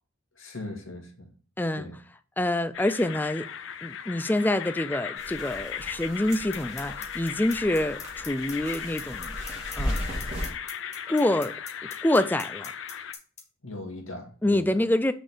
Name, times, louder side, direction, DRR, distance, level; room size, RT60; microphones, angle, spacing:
voice 1, 0.4-1.3 1.8-1.9 13.6-14.7, left 2 dB, 85° left, 1.9 m, -39 dB
voice 2, 1.6-1.9 2.4-3.5 3.8-9.4 9.8-10.0 11.1-11.5 12.0-12.7 14.4-15.1, left 1 dB, 10° left, 0.3 m, -26 dB
sound 1, 2.7-13.1, left 8 dB, 70° left, 0.5 m, -37 dB
sound 2, 5.2-10.5, equal, 35° right, 2.4 m, -36 dB
sound 3, 6.5-13.4, left 6 dB, 35° left, 1.7 m, -40 dB
6.4 x 3.6 x 6.1 m
head